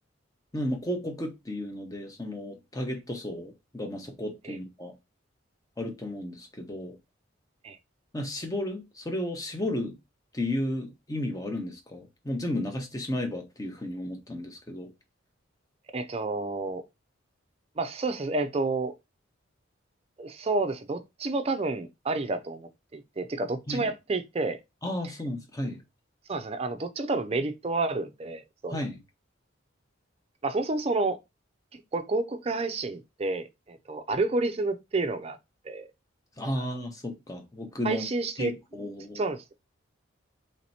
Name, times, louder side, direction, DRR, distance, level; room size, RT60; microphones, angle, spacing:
voice 1, 0.5-4.9 5.8-7.0 8.1-10.0 10.3-14.9 23.7-23.9 24.8-25.8 28.7-29.0 36.4-38.0 38.4-39.2, left 1 dB, 15° left, 0.8 m, -33 dB
voice 2, 15.9-16.8 17.8-18.9 20.2-24.6 26.3-28.8 30.4-31.2 31.7-35.4 35.6-35.9 37.8-38.5 39.1-39.5, right 3 dB, 30° right, 0.4 m, -30 dB
3.2 x 2.9 x 4.1 m
head